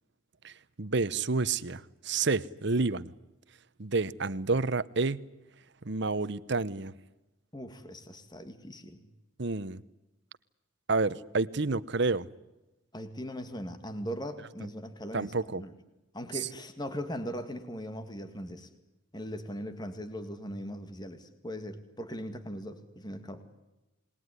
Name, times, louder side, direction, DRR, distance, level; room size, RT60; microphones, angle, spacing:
voice 1, 0.8-3.1 3.8-5.2 5.8-6.9 9.4-9.8 10.9-12.3 15.1-15.6, right 3 dB, 60° right, 0.9 m, -29 dB
voice 2, 7.5-9.1 12.9-15.7 16.1-18.7 19.1-23.4, equal, 20° left, 2.1 m, -39 dB
28.5 x 20.5 x 9.9 m
head